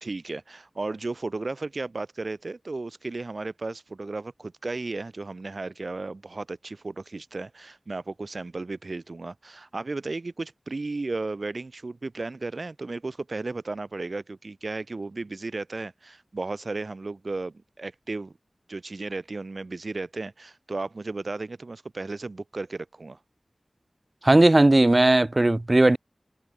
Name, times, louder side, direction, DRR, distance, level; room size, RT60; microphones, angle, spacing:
voice 1, 0.0-18.3 18.7-23.2, right 3 dB, 55° right, 1.4 m, -34 dB
voice 2, 24.2-26.0, right 2 dB, 35° right, 0.3 m, -17 dB
wide cardioid pair, 75°, 0 cm